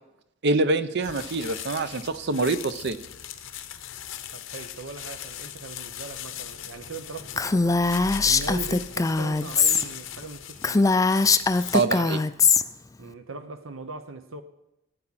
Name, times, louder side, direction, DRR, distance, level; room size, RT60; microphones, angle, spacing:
voice 1, 0.4-3.0 11.7-12.2, right 3 dB, 60° right, 0.7 m, -25 dB
sound 1, 1.0-11.9, left 10 dB, 70° left, 0.8 m, -40 dB
voice 2, 4.3-7.8 8.2-10.9 13.0-14.4, right 4 dB, 80° right, 1.0 m, -40 dB
Female speech woman speaking, 7.4-9.8 10.2-10.3 10.6-12.6, left 4 dB, 15° left, 0.3 m, -21 dB
sound 2, 7.4-10.0, equal, 20° right, 0.6 m, -42 dB
15.0 x 8.6 x 4.2 m
head